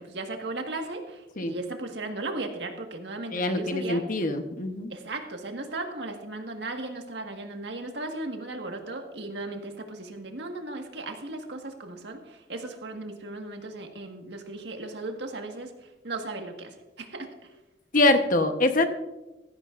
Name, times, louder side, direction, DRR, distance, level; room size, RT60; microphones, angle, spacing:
voice 1, 0.0-4.0 4.9-15.7 16.0-17.3, right 2 dB, 75° right, 4 dB, 1.7 m, -36 dB
voice 2, 3.3-4.9 17.9-18.8, left 2 dB, 50° left, 7 dB, 1.1 m, -24 dB
15.5 x 15.0 x 2.5 m, 1.0 s
head